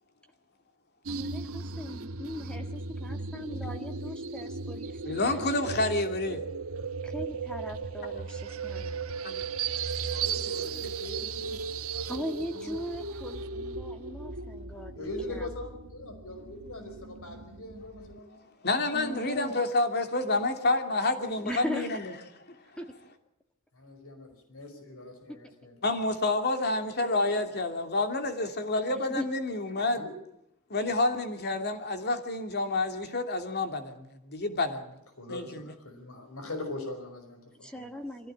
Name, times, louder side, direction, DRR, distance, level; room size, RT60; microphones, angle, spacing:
voice 1, 1.1-2.6 3.0-5.4 7.0-9.0 12.1-15.5 18.9-19.6 21.4-22.0 22.8-22.9 26.9-27.5 28.9-29.3 37.6-38.3, equal, 5° left, 5 dB, 1.6 m, -39 dB
sound 1, 1.1-18.2, right 5 dB, 75° right, 1.2 m, -36 dB
voice 2, 5.1-6.4 9.2-9.7 11.8-12.0 18.6-22.0 25.8-30.0 30.7-34.9 35.3-35.7, left 2 dB, 50° left, 6 dB, 2.9 m, -29 dB
voice 3, 10.1-11.6 11.9-12.3 12.5-12.8 15.0-18.4 19.0-19.4 23.7-25.8 30.0-30.1 35.2-37.9, left 2 dB, 75° left, 5 dB, 5.3 m, -42 dB
24.0 x 16.0 x 8.8 m, 0.84 s
head